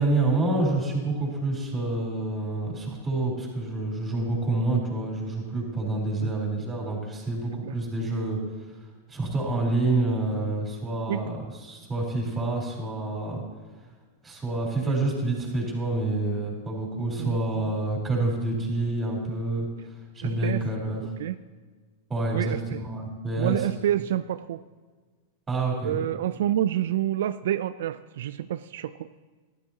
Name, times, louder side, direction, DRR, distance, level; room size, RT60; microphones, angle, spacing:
voice 1, 0.0-8.4 9.1-11.4 11.6-13.4 14.2-19.7 20.1-21.0 22.1-23.7 25.5-26.0, right 2 dB, 15° right, -2 dB, 3.8 m, -27 dB
voice 2, 20.2-20.6 21.2-21.4 22.3-22.8 23.4-24.6 25.8-29.2, right 12 dB, 75° right, 13 dB, 0.3 m, -28 dB
13.5 x 12.0 x 2.8 m, 1.4 s
hypercardioid pair, 120°, 0 cm